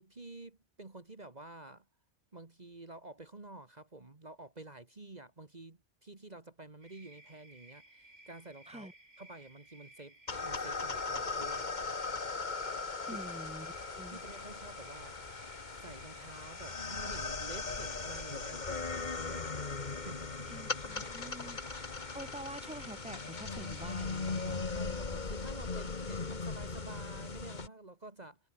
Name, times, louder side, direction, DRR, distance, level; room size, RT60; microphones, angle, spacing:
voice 1, 0.0-1.9 2.3-8.9 9.2-11.7 13.0-13.3 14.1-15.2 15.8-19.5 20.0-20.6 21.2-21.6 24.7-28.4, right 2 dB, 40° right, 2.1 m, -50 dB
sound 1, 6.8-24.5, right 2 dB, 65° right, 6.0 m, -58 dB
sound 2, 10.3-27.7, left 4 dB, 40° left, 1.7 m, -39 dB
voice 2, 13.1-14.2 20.5-21.6 22.1-24.7, right 1 dB, 5° right, 2.5 m, -47 dB
omnidirectional pair, 1.1 m